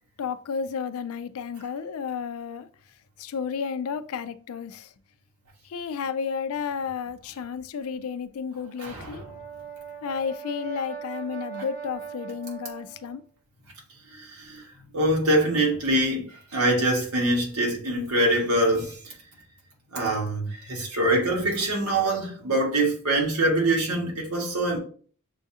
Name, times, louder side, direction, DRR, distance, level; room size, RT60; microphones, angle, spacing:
voice 1, 0.2-2.7 3.2-4.9 5.7-9.2 10.0-13.2, left 6 dB, 70° left, 0.4 m, -32 dB
voice 2, 8.8-9.3 14.1-14.6 14.9-19.1 19.9-24.8, right 1 dB, 85° right, 1.4 m, -24 dB
Brass instrument, 9.0-13.2, right 7 dB, 40° right, 1.0 m, -40 dB
6.8 x 2.4 x 2.8 m
head